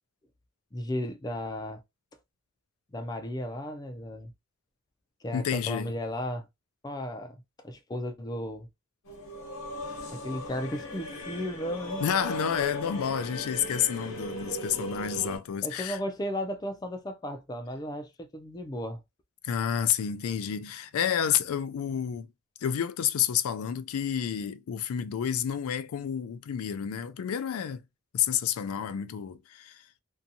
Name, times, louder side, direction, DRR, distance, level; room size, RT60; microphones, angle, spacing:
voice 1, 0.7-1.8 2.9-4.3 5.2-6.5 6.8-7.4 7.6-8.7 10.1-12.0 15.6-19.0, left 1 dB, 20° left, 0.4 m, -35 dB
voice 2, 5.3-5.9 12.0-16.0 19.4-22.3 22.6-27.8 28.1-29.8, left 9 dB, 90° left, 0.3 m, -29 dB
sound 1, 9.1-15.4, equal, 75° left, 1.0 m, -37 dB
2.6 x 2.3 x 2.6 m
head